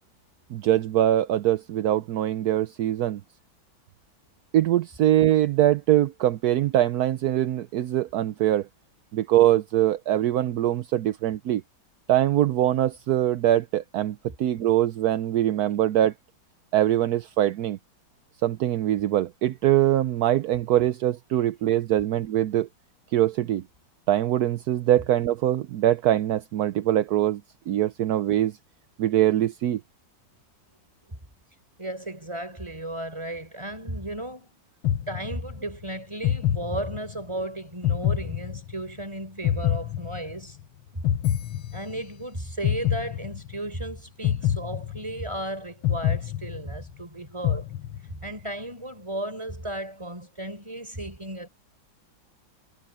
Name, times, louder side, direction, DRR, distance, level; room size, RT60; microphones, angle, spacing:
voice 1, 0.5-3.2 4.5-8.7 9.1-11.6 12.1-16.1 16.7-17.8 18.4-22.7 23.1-23.6 24.1-27.4 27.7-28.5 29.0-29.8, right 12 dB, 65° right, 1.0 m, -23 dB
voice 2, 31.8-34.5 35.1-40.6 40.9-41.0 41.7-47.7 48.0-51.5, right 1 dB, 15° right, 5.2 m, -34 dB
sound 1, 34.8-35.7 36.2-37.3 37.8-39.0 39.4-40.6 41.0-42.2 42.6-43.7 44.2-45.4 45.8-47.0 47.4-48.3, left 11 dB, 90° left, 1.9 m, -27 dB
omnidirectional pair, 2.2 m